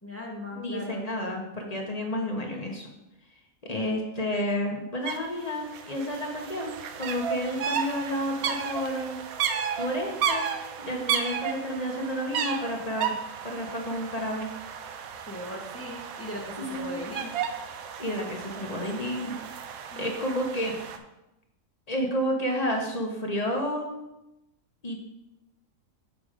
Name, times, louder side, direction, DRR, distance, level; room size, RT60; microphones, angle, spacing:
voice 1, 0.0-1.1 15.3-17.4 19.9-20.1, left 1 dB, 10° left, -2 dB, 1.2 m, -38 dB
voice 2, 0.6-2.9 3.7-9.2 9.8-10.5 10.8-13.1 13.4-14.5 16.6-17.0 18.0-19.4 19.9-20.7 21.9-23.9 24.8-25.0, equal, 30° left, 1 dB, 1.1 m, -30 dB
sound 1, 5.1-5.2 5.4-21.0, right 7 dB, 80° right, 1.1 m, -33 dB
6.6 x 5.0 x 5.0 m, 0.92 s
omnidirectional pair, 1.5 m